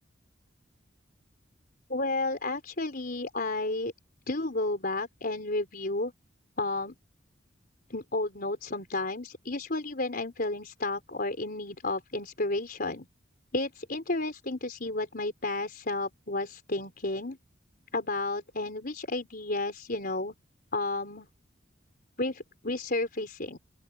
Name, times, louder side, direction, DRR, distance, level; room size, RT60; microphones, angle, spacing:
voice 1, 1.9-3.9 4.3-6.1 6.6-7.0 7.9-13.1 13.5-17.4 17.9-20.3 20.7-21.3 22.2-23.6, left 2 dB, 50° left, 4.4 m, -32 dB
open air
head